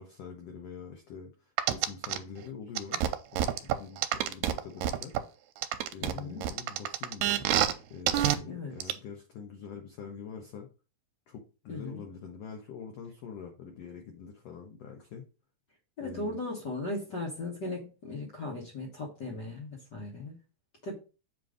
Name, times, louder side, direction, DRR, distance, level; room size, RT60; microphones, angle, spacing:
voice 1, 0.0-3.0 3.3-5.3 5.9-7.5 7.9-10.7 11.3-15.3 16.0-16.4, left 6 dB, 85° left, 1.4 m, -45 dB
sound 1, 1.6-2.2 2.8-5.2 5.6-7.7 8.1-8.4 8.8-8.9, right 12 dB, 85° right, 2.2 m, -27 dB
voice 2, 6.0-6.4 8.5-8.9 11.7-12.0 16.0-20.4 20.8-20.9, left 2 dB, 65° left, 1.1 m, -37 dB
7.4 x 2.6 x 4.9 m
omnidirectional pair, 4.0 m